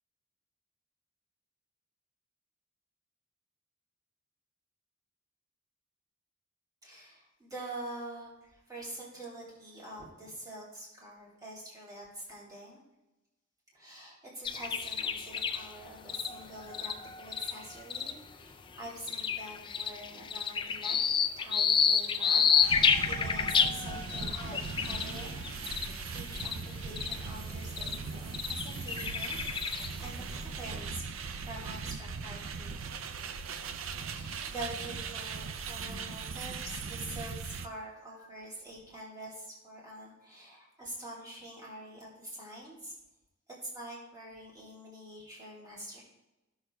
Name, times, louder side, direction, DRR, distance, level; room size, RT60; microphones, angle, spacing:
voice 1, 6.8-12.8 13.7-21.0 21.4-25.5 26.1-32.8 34.0-42.9 43.7-46.0, right 1 dB, 20° right, -5 dB, 2.8 m, -46 dB
sound 1, 14.4-18.3 18.8-26.7 27.0-27.2 27.8-28.0 28.3-30.1, left 6 dB, 25° left, 0.4 m, -30 dB
sound 2, 22.6-37.7, right 5 dB, 70° right, 0.5 m, -39 dB
15.0 x 6.4 x 2.3 m, 0.99 s
head